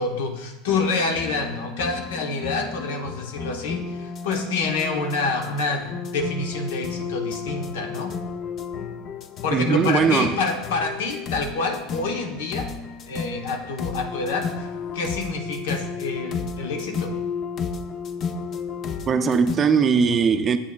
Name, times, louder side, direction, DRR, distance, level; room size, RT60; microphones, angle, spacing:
voice 1, 0.0-8.1 9.4-12.7 13.1-14.7 14.9-17.1, left 3 dB, 80° left, 0.9 m, -27 dB
sound 1, 0.7-19.6, left 6 dB, 40° left, 0.5 m, -33 dB
voice 2, 9.5-10.4 19.1-20.6, right 6 dB, 30° right, 0.4 m, -20 dB
8.2 x 7.6 x 2.3 m
supercardioid pair, 105°, 0 cm